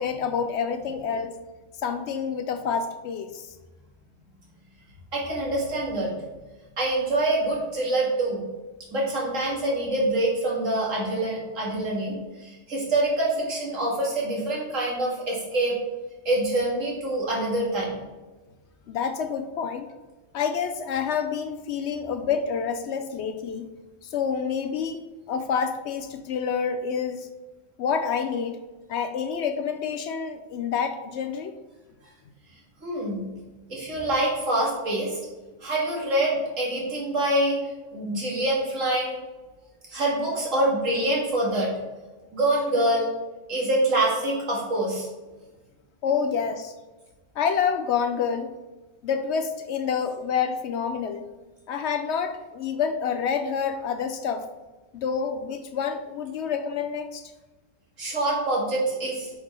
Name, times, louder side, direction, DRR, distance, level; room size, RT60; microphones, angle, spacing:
voice 1, 0.0-1.4 1.8-3.6 18.9-19.9 20.3-23.7 24.0-25.0 25.3-27.3 27.8-28.6 28.9-31.5 46.0-46.7 47.4-48.5 49.0-51.3 51.7-54.5 54.9-57.2, left 6 dB, 65° left, 8 dB, 0.8 m, -28 dB
voice 2, 5.1-6.1 6.8-8.4 8.9-15.8 16.3-18.0 32.8-33.3 33.7-35.2 35.6-37.6 37.9-39.2 39.9-41.7 42.3-43.1 43.5-45.1 58.0-59.3, right 1 dB, 80° right, -4 dB, 2.3 m, -25 dB
8.1 x 4.3 x 3.3 m, 1.2 s
omnidirectional pair, 1.3 m